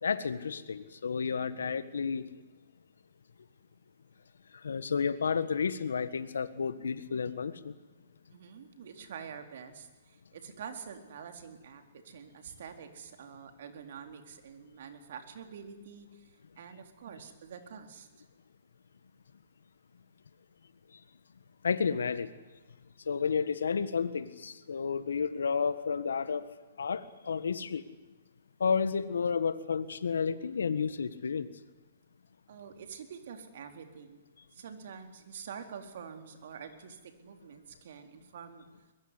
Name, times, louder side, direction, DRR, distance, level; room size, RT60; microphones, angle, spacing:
voice 1, 0.0-2.2 4.6-7.7 21.6-22.3 23.1-26.4 26.8-27.8 28.6-31.5, left 6 dB, 80° left, 13 dB, 1.6 m, -31 dB
voice 2, 8.3-18.1 32.5-34.2 34.5-38.7, right 7 dB, 60° right, 6 dB, 4.0 m, -47 dB
23.0 x 21.5 x 9.9 m, 1.2 s
hypercardioid pair, 130°, 0 cm